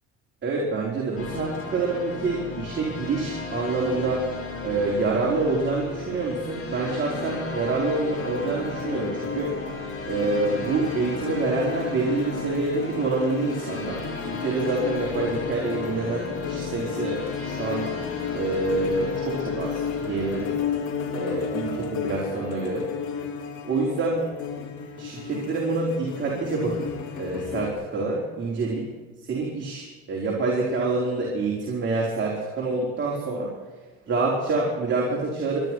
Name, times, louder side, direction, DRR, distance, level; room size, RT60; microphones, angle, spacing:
voice 1, 0.4-4.2 4.6-9.5 10.0-14.0 14.3-17.2 17.4-17.9 18.3-20.5 21.1-22.9 23.6-24.2 25.0-26.9 27.1-28.9 29.2-33.5 34.1-35.7, right 3 dB, 40° right, -4 dB, 4.8 m, -27 dB
sound 1, 1.2-20.6, left 3 dB, 50° left, 5.3 m, -35 dB
sound 2, 8.2-27.7, left 7 dB, 85° left, 3.0 m, -33 dB
25.0 x 11.0 x 4.7 m, 1.3 s
cardioid pair, 95°, 29 cm